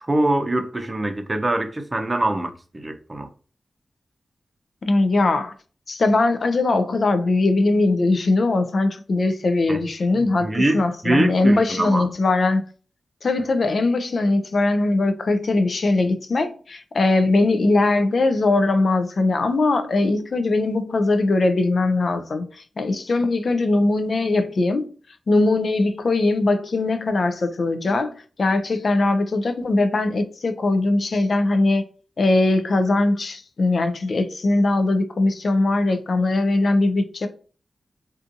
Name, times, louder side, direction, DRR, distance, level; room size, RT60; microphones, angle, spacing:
voice 1, 0.0-3.3 9.7-9.8 10.2-12.1, right 1 dB, 35° right, 0.5 m, -24 dB
voice 2, 4.8-5.5 5.9-12.6 13.2-24.9 25.3-31.8 32.2-37.3, left 2 dB, 65° left, 0.3 m, -20 dB
2.6 x 2.4 x 2.5 m
cardioid pair, 40°, 0 cm